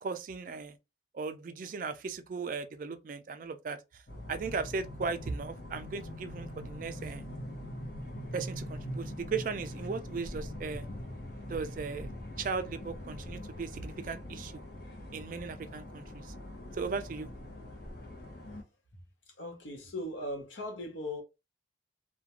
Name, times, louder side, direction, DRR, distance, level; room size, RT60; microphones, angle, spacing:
voice 1, 0.0-0.8 1.1-4.0 4.3-7.2 8.3-10.8 11.5-12.1 12.4-14.6 15.1-16.3 16.7-17.3, right 4 dB, 45° right, 0.3 m, -37 dB
sound 1, 4.1-18.6, equal, 50° left, 0.7 m, -43 dB
voice 2, 19.4-21.2, left 1 dB, 85° left, 0.8 m, -38 dB
2.4 x 2.1 x 2.9 m
head